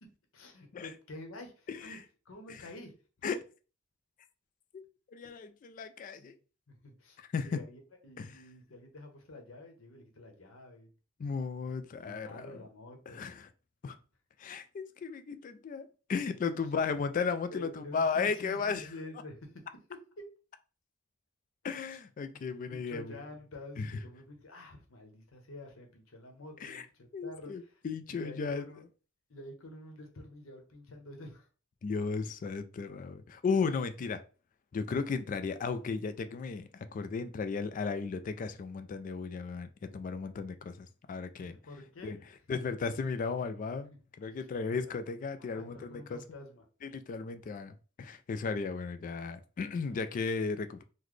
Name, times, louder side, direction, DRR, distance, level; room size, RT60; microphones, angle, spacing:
voice 1, 0.0-2.0 2.2-2.9 6.2-6.4 6.7-10.9 12.0-13.2 17.5-20.3 21.8-22.0 22.3-22.4 22.7-27.8 28.1-28.8 29.3-31.5 41.4-42.5 44.3-44.5 44.8-44.9 45.4-46.6 49.9-50.2, left 1 dB, 80° left, 0.9 m, -49 dB
voice 2, 1.7-2.0 3.2-3.4 4.7-4.8 5.1-6.4 7.3-7.6 8.2-8.4 11.2-12.6 13.1-13.5 13.8-14.0 14.4-18.9 21.6-23.2 23.8-23.9 26.6-26.8 27.1-28.7 31.8-34.2 34.7-41.6 42.0-42.2 42.5-43.9 44.2-46.2 46.8-50.8, left 5 dB, 40° left, 0.3 m, -35 dB
3.9 x 2.1 x 3.1 m
head